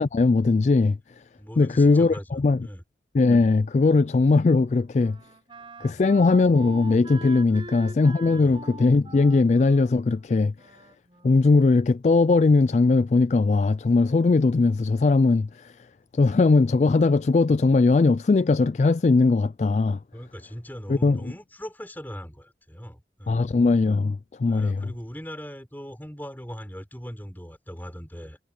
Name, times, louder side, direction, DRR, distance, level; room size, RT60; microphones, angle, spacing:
voice 1, 0.0-1.2 1.6-2.7 3.1-5.2 5.8-10.8 11.2-15.9 16.1-20.0 20.9-21.3 23.3-24.9, left 3 dB, 40° left, 0.3 m, -20 dB
voice 2, 1.4-2.8 5.8-6.0 7.5-7.7 8.3-8.6 20.1-23.4 24.5-28.4, equal, 10° left, 4.6 m, -40 dB
Wind instrument woodwind instrument, 3.9-11.7, right 2 dB, 30° right, 6.8 m, -44 dB
head